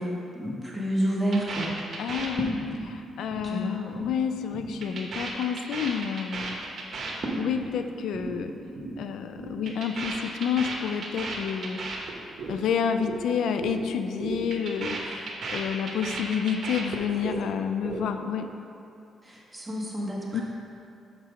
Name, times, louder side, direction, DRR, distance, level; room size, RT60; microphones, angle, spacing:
voice 1, 0.0-1.8 3.4-3.9 18.3-18.7 19.2-20.4, equal, 10° right, -4 dB, 1.7 m, -30 dB
sound 1, 1.3-2.9 3.1-3.5 3.7-4.1 4.4-7.7 8.0-8.3 8.6-8.9 9.2-12.6 12.8-13.2 13.4-13.8 14.1-17.4 17.7-18.3, right 3 dB, 60° right, 1.3 m, -35 dB
voice 2, 2.0-6.6 7.4-8.5 9.0-11.8 12.5-18.5 20.3-20.4, left 7 dB, 80° left, 8 dB, 0.3 m, -29 dB
6.7 x 5.9 x 5.0 m, 2.6 s
cardioid pair, 80°, 0 cm